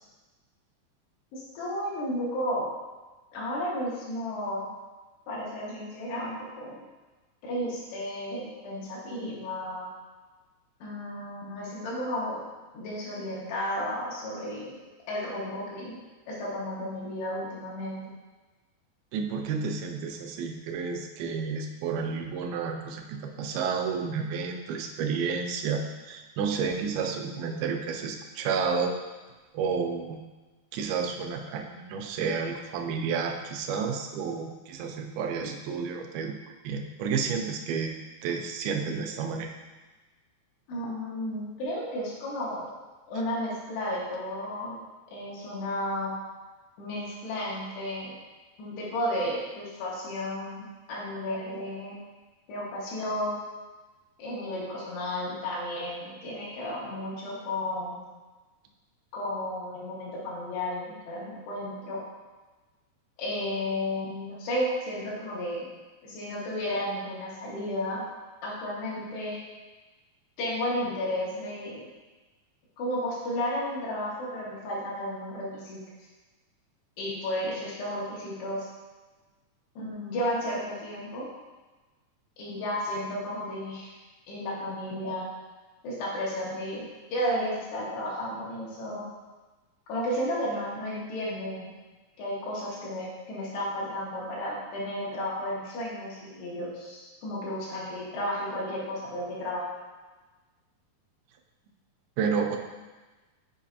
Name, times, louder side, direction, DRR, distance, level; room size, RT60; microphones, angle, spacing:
voice 1, 1.3-2.7 3.3-4.7 5.3-6.8 7.4-9.9 10.8-12.4 12.7-14.7 15.1-16.0 16.3-18.0 40.7-42.7 43.1-44.8 45.1-46.1 46.8-48.2 48.6-52.0 52.5-53.4 54.2-58.0 59.1-62.0 63.2-65.7 66.0-68.0 68.4-69.4 70.4-71.9 72.8-75.8 77.0-78.7 79.8-81.3 82.4-83.9 84.3-85.2 85.8-89.1 89.9-91.7 92.2-99.6, left 1 dB, 85° left, -6 dB, 3.7 m, -33 dB
voice 2, 19.1-28.9 29.5-30.2 30.7-37.9 38.2-39.5 102.2-102.6, right 5 dB, 80° right, 3 dB, 2.3 m, -31 dB
8.2 x 5.3 x 2.8 m, 1.2 s
omnidirectional pair, 4.6 m